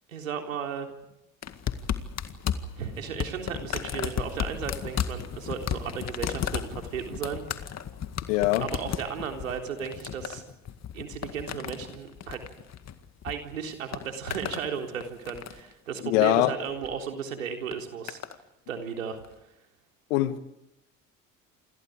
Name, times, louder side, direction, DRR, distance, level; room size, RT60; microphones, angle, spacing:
voice 1, 0.1-0.9 2.8-7.5 8.6-10.4 10.9-12.4 13.2-18.2 18.7-19.2, right 7 dB, 85° right, 3.7 m, -35 dB
sound 1, 1.4-13.3 13.6-14.7 15.0-15.7 16.6-16.9 17.7-18.4 19.2-19.3, left 8 dB, 40° left, 2.1 m, -34 dB
voice 2, 8.3-8.7 16.0-16.6 20.1-20.4, left 15 dB, 75° left, 1.8 m, -22 dB
28.5 x 27.0 x 5.1 m
hypercardioid pair, 60°, 39 cm